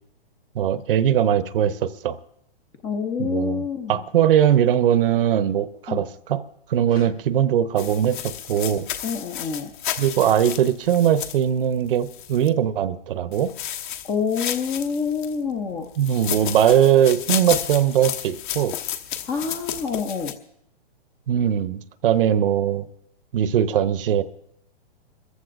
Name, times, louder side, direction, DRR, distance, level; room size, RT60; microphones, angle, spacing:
voice 1, 0.5-2.2 3.2-3.6 3.9-6.4 6.7-8.9 10.0-13.5 16.0-18.8 21.3-22.9 23.3-24.2, right 10 dB, 60° right, 14 dB, 0.8 m, -20 dB
voice 2, 2.8-4.0 5.9-6.0 6.9-7.1 9.0-9.7 14.1-15.9 19.3-20.3, left 6 dB, 15° left, 7 dB, 0.5 m, -27 dB
sound 1, 7.8-12.5 13.3-15.4 15.9-20.3, left 10 dB, 50° left, 1.2 m, -32 dB
28.0 x 14.5 x 2.5 m, 0.74 s
hypercardioid pair, 145°, 31 cm